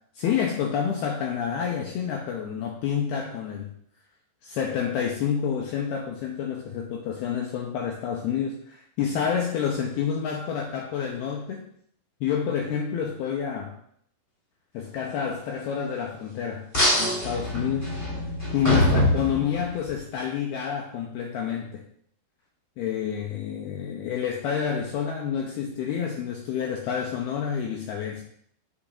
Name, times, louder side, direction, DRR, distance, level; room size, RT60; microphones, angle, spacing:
voice 1, 0.2-3.7 4.4-11.7 12.2-13.8 14.7-16.7 17.0-21.8 22.8-28.2, left 7 dB, 85° left, 1 dB, 2.3 m, -29 dB
sound 1, 16.7-19.9, left 1 dB, 15° left, 3.0 m, -24 dB
10.0 x 9.1 x 2.6 m, 0.66 s
omnidirectional pair, 5.4 m